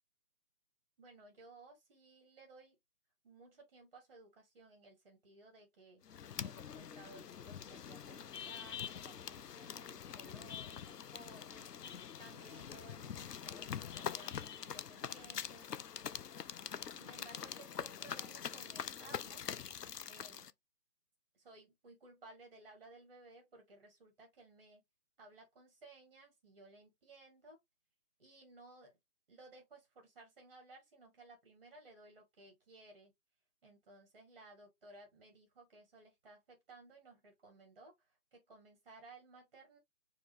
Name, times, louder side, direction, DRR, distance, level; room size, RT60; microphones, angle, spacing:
voice 1, 1.0-2.7 3.2-6.0 6.4-11.7 12.2-15.7 16.9-19.4 20.1-20.5 21.3-24.8 25.2-27.6 28.2-28.9 29.3-33.1 33.6-39.8, right 2 dB, 25° right, 1.5 m, -59 dB
sound 1, 6.1-20.5, left 8 dB, 85° left, 0.5 m, -45 dB
4.8 x 2.8 x 2.7 m
figure-of-eight pair, 150°, 47 cm